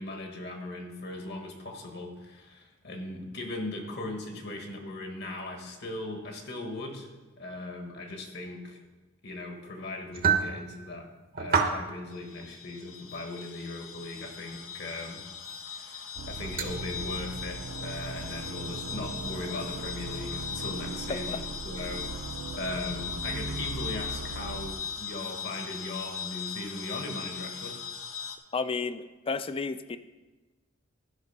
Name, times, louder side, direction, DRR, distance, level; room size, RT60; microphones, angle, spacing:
voice 1, 0.0-7.1 7.4-8.8 9.2-11.1 11.4-15.3 15.7-27.8, left 2 dB, 55° left, 3 dB, 1.4 m, -38 dB
sound 1, 10.1-10.5 11.3-11.8 12.4-12.5 13.4-13.5 15.5-15.6 16.6-16.7, right 6 dB, 45° right, 0.8 m, -26 dB
sound 2, 12.1-28.4, left 7 dB, 85° left, 0.8 m, -39 dB
sound 3, 16.2-24.7, right 3 dB, 85° right, 0.5 m, -39 dB
voice 2, 28.5-30.0, left 4 dB, 25° left, 13 dB, 0.3 m, -32 dB
12.0 x 5.1 x 5.4 m, 1.2 s
head